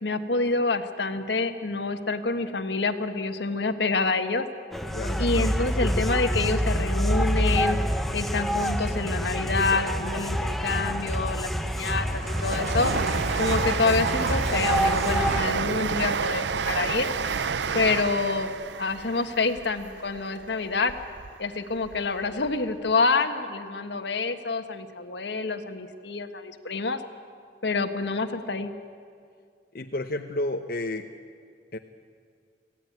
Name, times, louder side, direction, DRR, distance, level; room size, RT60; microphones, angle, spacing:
voice 1, 0.0-4.4 5.2-7.8 8.1-12.9 13.3-17.1 17.7-20.9 21.4-27.0 27.6-28.7, left 3 dB, 75° left, 8 dB, 1.4 m, -27 dB
sound 1, 4.7-15.4, equal, ahead, 0.8 m, -27 dB
voice 2, 4.9-5.3 29.7-31.1 31.7-31.8, left 1 dB, 50° left, 4 dB, 0.9 m, -31 dB
Train, 11.1-21.3 21.7-22.6 22.9-23.0, right 5 dB, 75° right, 0.6 m, -30 dB
25.0 x 16.5 x 9.5 m, 2.2 s
head